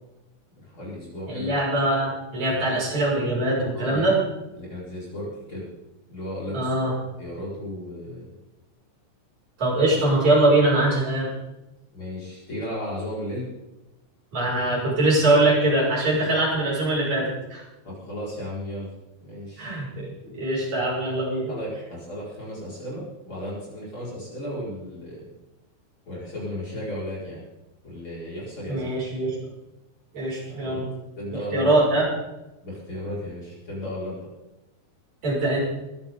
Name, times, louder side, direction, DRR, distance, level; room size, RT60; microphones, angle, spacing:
voice 1, 0.6-1.5 3.7-4.1 4.5-5.7 6.1-6.7 7.2-8.3 11.9-13.5 17.8-18.9 19.2-19.7 21.5-25.4 26.1-27.4 27.8-28.9 30.6-30.8 31.2-31.7 32.6-34.3, left 1 dB, 40° left, -7 dB, 6.3 m, -34 dB
voice 2, 1.3-4.2 6.5-6.9 9.6-11.3 14.3-17.6 19.6-21.5 28.7-29.4 30.1-30.9 31.5-32.0 35.2-35.6, right 2 dB, 65° right, -5 dB, 7.6 m, -22 dB
23.5 x 12.5 x 3.9 m, 0.97 s
omnidirectional pair, 3.5 m